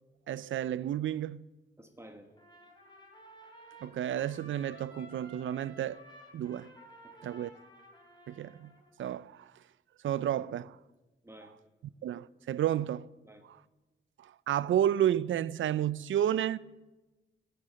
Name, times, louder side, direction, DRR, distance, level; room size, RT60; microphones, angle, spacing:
voice 1, 0.3-1.4 3.8-6.0 6.3-6.7 7.2-7.5 8.3-8.7 9.0-9.5 10.0-10.8 12.0-13.1 14.5-16.6, right 11 dB, 85° right, 0.4 m, -31 dB
voice 2, 1.8-2.3 7.0-7.3 11.2-11.5 13.2-13.4, right 1 dB, 15° right, 1.2 m, -52 dB
Trumpet, 2.4-9.0, right 1 dB, 25° left, 3.3 m, -54 dB
14.5 x 8.0 x 7.6 m
wide cardioid pair, 115°, 19 cm